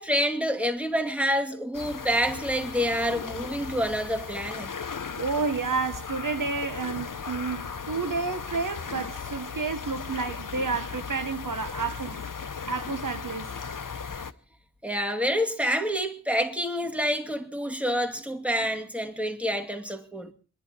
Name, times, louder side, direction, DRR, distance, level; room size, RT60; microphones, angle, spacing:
voice 1, 0.0-4.7 14.8-20.3, equal, 5° right, 2.3 m, -27 dB
sound 1, 1.7-14.3, left 5 dB, 80° left, 0.9 m, -37 dB
voice 2, 5.2-12.2 12.7-13.5, right 4 dB, 85° right, 1.1 m, -30 dB
28.0 x 11.0 x 4.5 m
wide cardioid pair, 45°, 31 cm